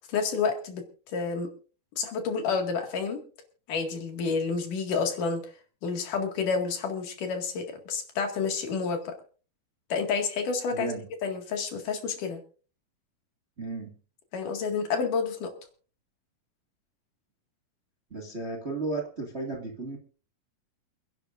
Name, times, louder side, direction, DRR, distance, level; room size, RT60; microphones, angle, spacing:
voice 1, 0.1-0.8 1.1-1.5 2.0-3.2 3.7-5.5 5.8-9.2 9.9-11.0 11.2-12.4 14.3-15.5, left 5 dB, 70° left, 4 dB, 3.5 m, -29 dB
voice 2, 10.7-11.0 13.6-13.9 18.1-20.0, right 3 dB, 25° right, 1 dB, 1.5 m, -34 dB
27.5 x 11.0 x 2.6 m, 0.38 s
omnidirectional pair, 3.9 m